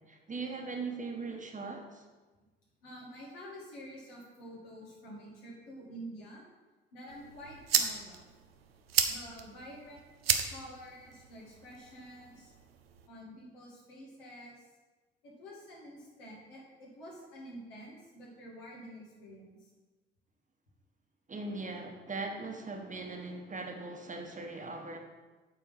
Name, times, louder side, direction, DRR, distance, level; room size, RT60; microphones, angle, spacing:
voice 1, 0.0-2.0 21.3-25.0, right 3 dB, 25° right, 3 dB, 1.2 m, -40 dB
voice 2, 2.8-6.4 6.9-8.2 9.1-10.0 10.5-12.5 13.1-14.6 15.2-19.7, equal, 75° left, -4 dB, 2.2 m, -48 dB
sound 1, 7.1-13.1, right 8 dB, 85° right, 0.6 m, -35 dB
8.0 x 4.5 x 5.8 m, 1.2 s
figure-of-eight pair, 50°, 29 cm